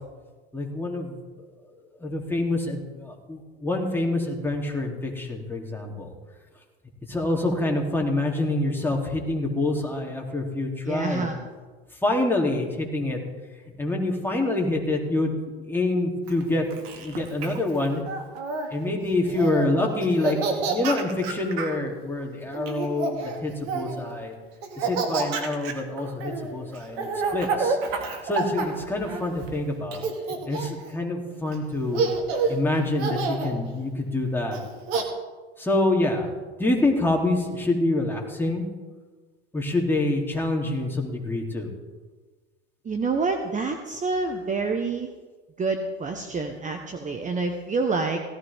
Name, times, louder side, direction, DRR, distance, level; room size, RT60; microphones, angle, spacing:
voice 1, 0.5-1.2 2.0-6.1 7.1-11.3 12.0-13.2 13.8-15.3 15.6-16.6 16.9-18.0 18.7-24.3 24.8-30.0 30.5-32.0 32.5-34.6 35.6-36.3 36.6-38.7 39.5-41.7, left 2 dB, 5° left, -1 dB, 3.4 m, -26 dB
voice 2, 10.8-11.4 42.8-45.1 45.6-48.2, right 4 dB, 25° right, 5 dB, 1.3 m, -27 dB
Laughter, 16.3-18.7 19.2-19.7 20.0-21.8 22.5-24.0 24.6-29.5 29.9-30.9 31.5-31.6 31.9-32.6 33.0-33.5 34.5-35.0, right 4 dB, 70° right, 2.4 m, -29 dB
17.0 x 14.5 x 3.7 m, 1.3 s
hypercardioid pair, 85°, 33 cm